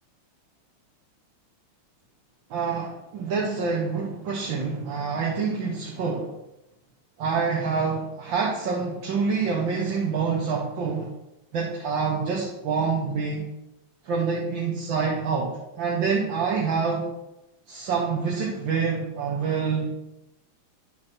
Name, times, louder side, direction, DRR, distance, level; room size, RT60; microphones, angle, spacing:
voice 1, 2.5-6.3 7.2-11.1 11.5-13.5 14.0-17.1 17.7-19.9, right 5 dB, 65° right, -2 dB, 1.8 m, -26 dB
10.5 x 4.0 x 6.0 m, 0.92 s
omnidirectional pair, 2.3 m